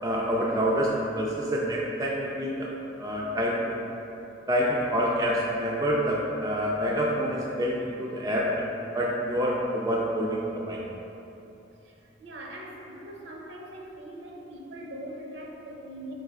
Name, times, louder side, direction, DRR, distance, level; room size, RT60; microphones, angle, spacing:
voice 1, 0.0-2.7 3.0-3.8 4.5-10.8, equal, 20° right, -4 dB, 0.3 m, -27 dB
voice 2, 11.8-16.1, right 1 dB, 70° right, -1 dB, 0.6 m, -42 dB
4.4 x 3.2 x 3.5 m, 2.9 s
head